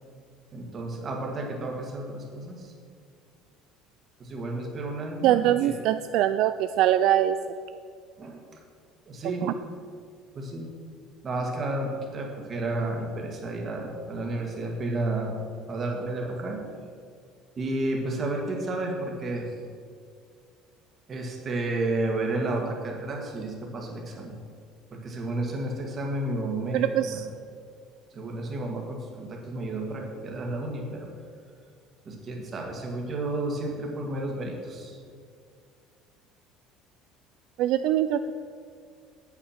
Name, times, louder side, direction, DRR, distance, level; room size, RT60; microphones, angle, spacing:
voice 1, 0.5-2.7 4.2-5.7 8.2-8.6 9.1-9.5 10.3-10.7 11.2-15.4 15.7-16.6 17.6-19.5 21.1-24.3 24.9-27.2 28.1-31.1 32.1-35.0, right 2 dB, 30° right, 0 dB, 1.9 m, -31 dB
voice 2, 5.2-7.4 9.4-9.5 26.7-27.3 37.6-38.3, right 12 dB, 65° right, 10 dB, 0.3 m, -23 dB
8.6 x 8.1 x 5.8 m, 2.2 s
cardioid pair, 140°, 0 cm